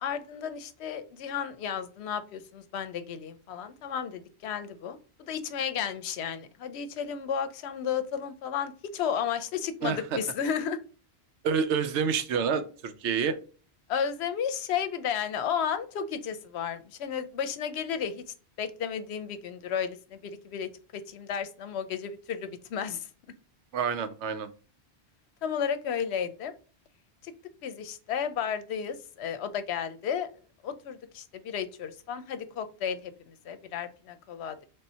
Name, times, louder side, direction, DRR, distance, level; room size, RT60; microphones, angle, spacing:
voice 1, 0.0-10.8 13.9-18.2 18.6-23.0 25.4-26.5 27.2-27.3 27.6-30.3 30.6-34.6, left 7 dB, 75° left, 10 dB, 0.8 m, -33 dB
voice 2, 9.8-10.2 11.4-13.4 23.7-24.5, right 6 dB, 85° right, 11 dB, 0.9 m, -28 dB
3.6 x 2.7 x 4.2 m, 0.38 s
omnidirectional pair, 1.1 m